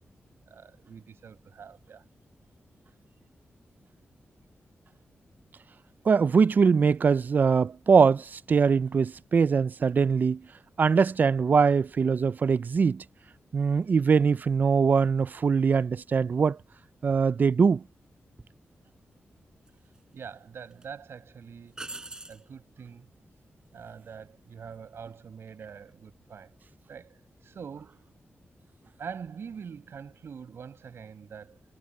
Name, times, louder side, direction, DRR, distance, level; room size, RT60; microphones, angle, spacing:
voice 1, 0.5-2.1 20.1-21.8 22.3-23.1 23.7-26.5 26.9-28.0 29.0-31.6, right 6 dB, 70° right, 6.2 m, -44 dB
voice 2, 6.1-10.4 10.8-13.0 13.5-16.6 17.0-17.8, right 5 dB, 45° right, 0.3 m, -22 dB
sound 1, 18.4-18.6 19.7-20.3 20.7-20.9 21.7-22.5 25.6-25.9, right 2 dB, 15° right, 4.2 m, -42 dB
wide cardioid pair, 155°, 4 cm